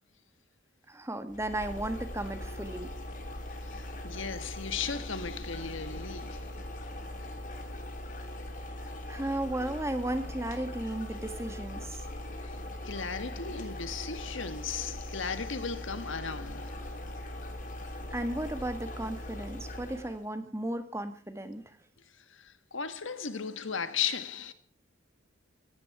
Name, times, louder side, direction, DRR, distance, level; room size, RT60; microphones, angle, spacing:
voice 1, 0.9-2.9 9.1-12.0 18.1-21.8, right 1 dB, 15° right, 1.5 m, -35 dB
sound 1, 1.3-20.2, left 1 dB, 40° left, 2.9 m, -40 dB
voice 2, 3.7-6.7 12.4-17.1 22.2-24.5, left 6 dB, 70° left, 1.5 m, -36 dB
17.0 x 16.0 x 4.8 m
head